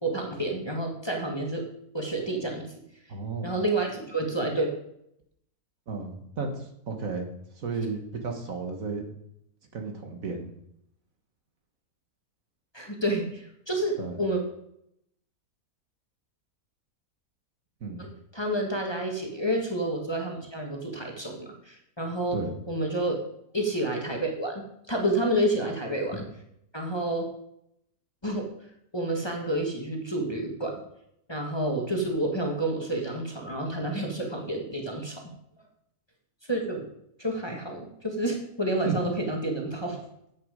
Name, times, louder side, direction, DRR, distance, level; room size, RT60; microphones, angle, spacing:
voice 1, 0.0-1.6 1.9-2.6 3.4-4.7 12.7-14.4 18.0-22.4 22.7-23.2 23.5-24.6 24.9-26.2 26.7-27.3 28.2-28.5 28.9-30.7 31.3-35.2 36.5-36.8 37.2-40.0, right 1 dB, 15° left, 1 dB, 1.6 m, -29 dB
voice 2, 3.1-3.5 5.9-9.0 9.7-10.5 14.0-14.2 17.8-18.1 22.3-22.5 38.9-39.0, right 4 dB, 60° right, 4 dB, 1.9 m, -33 dB
9.6 x 8.0 x 5.1 m, 0.75 s
omnidirectional pair, 1.6 m